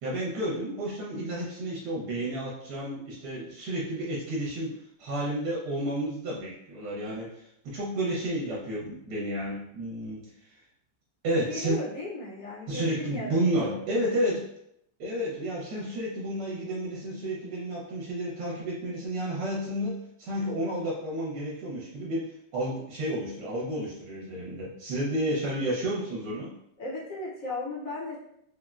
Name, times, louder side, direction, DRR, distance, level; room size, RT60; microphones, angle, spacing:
voice 1, 0.0-10.6 11.2-11.8 12.7-14.5 15.0-26.5, right 1 dB, 70° right, -5 dB, 1.2 m, -31 dB
voice 2, 11.4-13.8 26.8-28.2, left 2 dB, 65° left, -4 dB, 0.9 m, -36 dB
3.6 x 2.1 x 2.3 m, 0.75 s
omnidirectional pair, 2.0 m